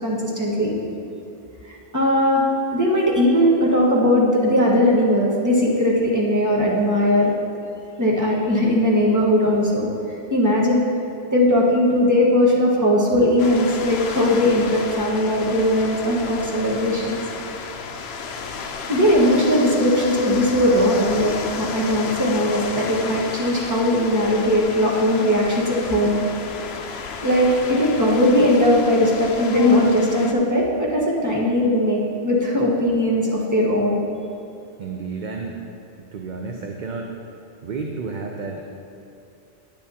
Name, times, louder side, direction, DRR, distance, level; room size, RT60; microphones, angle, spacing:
voice 1, 0.0-0.7 1.6-2.4 2.7-7.3 8.0-9.9 10.3-10.8 11.3-17.2 18.9-26.2 27.2-34.0, left 1 dB, 15° right, -5 dB, 1.3 m, -19 dB
sound 1, 13.4-30.3, left 5 dB, 75° left, 0.8 m, -32 dB
voice 2, 34.8-35.6 36.1-37.2 37.6-38.6, right 4 dB, 55° right, 2 dB, 0.6 m, -31 dB
10.5 x 8.5 x 2.8 m, 2.7 s
omnidirectional pair, 1.1 m